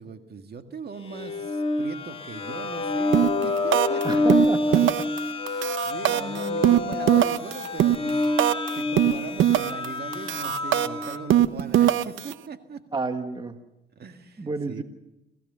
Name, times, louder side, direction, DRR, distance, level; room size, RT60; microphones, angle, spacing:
voice 1, 0.0-4.2 5.8-12.8 14.0-14.8, right 5 dB, 55° right, 6 dB, 1.9 m, -40 dB
sound 1, 1.0-11.3, left 2 dB, 30° left, 2.7 m, -27 dB
sound 2, 3.1-3.4 3.7-4.0 4.3-5.2 5.5-8.7 9.0-9.9 10.1-12.3, right 12 dB, 80° right, 0.9 m, -21 dB
voice 2, 4.0-5.0 12.9-13.6 14.4-14.8, right 3 dB, 20° right, 7 dB, 1.5 m, -30 dB
27.0 x 16.0 x 6.9 m, 0.99 s
cardioid pair, 90°, 20 cm